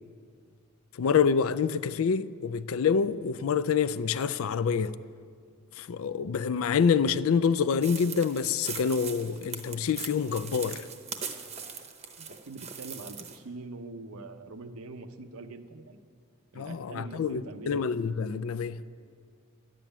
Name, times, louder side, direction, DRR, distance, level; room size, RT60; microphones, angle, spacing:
voice 1, 1.0-4.9 5.8-10.9 16.6-18.8, left 6 dB, 75° left, 0.4 m, -27 dB
sound 1, 7.8-13.4, right 6 dB, 30° right, 0.8 m, -41 dB
voice 2, 12.2-16.0 16.5-17.7, right 3 dB, 85° right, 0.8 m, -43 dB
12.0 x 7.7 x 10.0 m
head